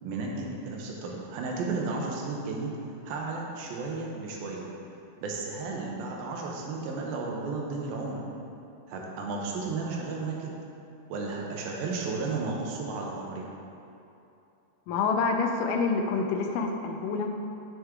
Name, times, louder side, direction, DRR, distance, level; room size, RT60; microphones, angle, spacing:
voice 1, 0.0-2.7 3.1-4.7 5.2-8.2 8.9-10.5 11.1-13.5, right 3 dB, 80° right, -1 dB, 2.6 m, -33 dB
voice 2, 14.9-17.3, left 4 dB, 90° left, 4 dB, 2.4 m, -27 dB
7.1 x 6.3 x 3.7 m, 2.7 s
omnidirectional pair, 4.3 m